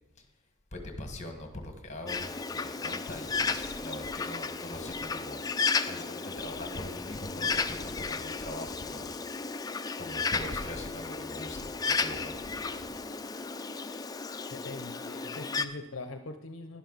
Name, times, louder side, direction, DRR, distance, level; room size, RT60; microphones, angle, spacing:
voice 1, 0.7-5.4 5.9-9.1 10.0-13.0, left 1 dB, 35° left, 5 dB, 1.6 m, -42 dB
Bird, 2.1-15.6, left 4 dB, 20° left, 0.4 m, -34 dB
voice 2, 14.5-16.8, left 2 dB, 65° left, 7 dB, 0.6 m, -42 dB
11.5 x 11.0 x 4.0 m, 1.1 s
head